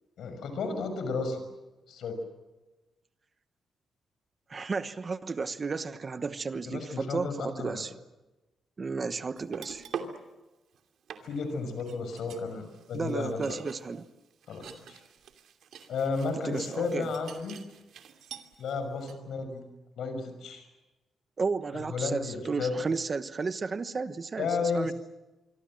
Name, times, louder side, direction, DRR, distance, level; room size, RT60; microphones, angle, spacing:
voice 1, 0.2-1.4 1.9-2.2 6.7-7.8 11.2-13.6 14.5-15.0 15.9-17.6 18.6-19.6 20.0-20.7 21.9-22.7 24.4-24.9, left 4 dB, 70° left, 8 dB, 5.9 m, -33 dB
voice 2, 4.5-7.9 8.8-9.8 12.9-14.0 16.4-17.1 21.4-24.9, right 4 dB, 30° right, 12 dB, 1.1 m, -33 dB
sound 1, 9.4-10.2 10.7-10.8 11.1-18.7 19.0-19.1, right 7 dB, 70° right, 2.7 m, -45 dB
26.0 x 24.5 x 7.7 m, 1.1 s
cardioid pair, 150°, 0 cm